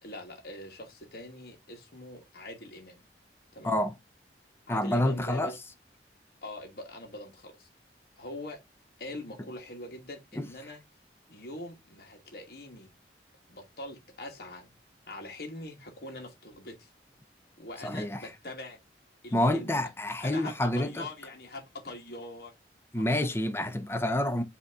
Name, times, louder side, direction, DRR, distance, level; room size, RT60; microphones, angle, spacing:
voice 1, 0.0-3.0 3.5-3.8 4.7-5.6 6.4-7.7 8.2-8.6 9.0-10.8 11.3-12.9 13.5-14.7 15.1-16.9 17.6-18.8 19.2-19.8 20.2-22.5, left 2 dB, 60° left, 1.3 m, -43 dB
voice 2, 3.6-3.9 4.7-5.5 10.3-10.5 17.8-18.2 19.3-21.1 22.9-24.4, left 1 dB, 15° left, 0.5 m, -28 dB
5.2 x 2.8 x 3.4 m
head